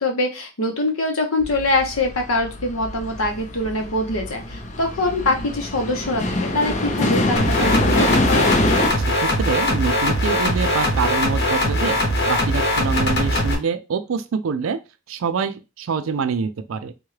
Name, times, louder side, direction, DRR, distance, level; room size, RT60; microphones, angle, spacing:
voice 1, 0.0-8.5, left 2 dB, 90° left, 3 dB, 1.0 m, -24 dB
sound 1, 1.4-8.9, left 2 dB, 35° left, 0.5 m, -24 dB
sound 2, 7.4-13.5, left 1 dB, 55° left, 0.9 m, -21 dB
voice 2, 9.2-14.8 15.1-16.9, right 5 dB, 75° right, 12 dB, 0.4 m, -25 dB
3.5 x 2.3 x 3.2 m, 0.27 s
head